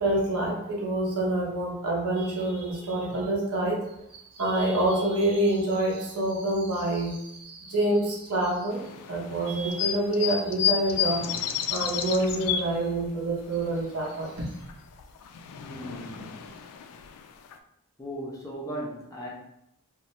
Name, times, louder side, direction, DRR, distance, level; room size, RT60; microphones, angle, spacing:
voice 1, 0.0-3.8 4.1-8.8 9.1-11.2 11.7-14.4, right 1 dB, 80° right, -3 dB, 0.9 m, -27 dB
sound 1, 8.7-13.3 13.6-14.7 15.0-17.5, left 9 dB, 90° left, 0.3 m, -31 dB
voice 2, 15.6-16.5 18.0-19.3, right 1 dB, 15° left, -3 dB, 0.4 m, -37 dB
2.7 x 2.1 x 3.1 m, 0.81 s
head